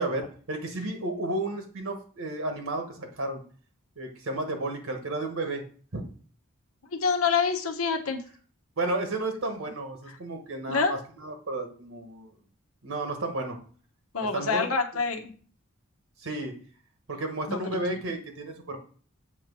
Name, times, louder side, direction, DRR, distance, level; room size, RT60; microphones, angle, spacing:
voice 1, 0.0-3.4 4.0-5.6 5.9-6.0 8.8-12.3 12.8-13.6 14.3-14.6 14.9-15.0 16.2-16.6 17.1-18.9, right 2 dB, 70° right, 4 dB, 1.3 m, -32 dB
voice 2, 6.9-8.2 10.7-10.9 14.1-15.3 17.5-18.1, left 5 dB, 80° left, 4 dB, 1.1 m, -27 dB
7.4 x 3.0 x 6.1 m, 0.43 s
head